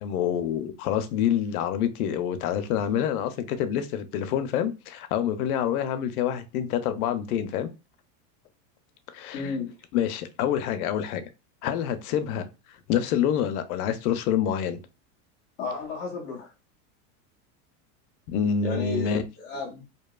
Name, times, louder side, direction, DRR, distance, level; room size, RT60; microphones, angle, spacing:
voice 1, 0.0-7.7 9.1-9.4 9.9-11.2 11.6-12.5 12.9-14.8 18.3-19.2, left 9 dB, 80° left, 0.6 m, -27 dB
voice 2, 9.3-9.7 15.6-16.5 18.6-19.8, left 4 dB, 30° left, 0.4 m, -33 dB
2.7 x 2.2 x 2.2 m
supercardioid pair, 165°, 44 cm